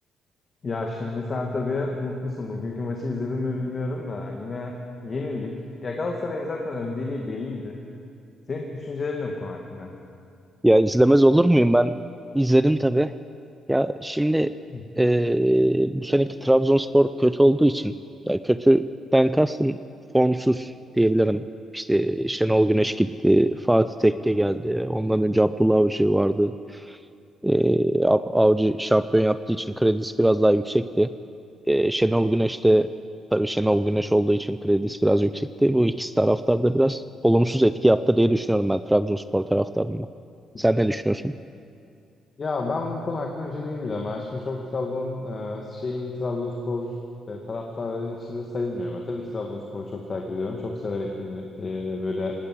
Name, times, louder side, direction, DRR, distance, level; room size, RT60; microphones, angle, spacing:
voice 1, 0.6-4.7 5.0-7.8 8.5-9.9 14.7-14.8 42.4-46.9 47.3-52.3, left 3 dB, 40° left, 1 dB, 2.1 m, -30 dB
voice 2, 10.6-12.0 12.3-13.1 13.7-14.5 15.0-17.9 18.3-18.9 19.1-19.8 20.1-21.4 21.7-26.5 26.9-27.0 27.4-31.1 31.7-32.9 33.3-40.1 40.6-41.4, right 1 dB, 5° right, 13 dB, 0.5 m, -20 dB
18.5 x 18.5 x 7.8 m, 2.4 s
cardioid pair, 90°, 0 cm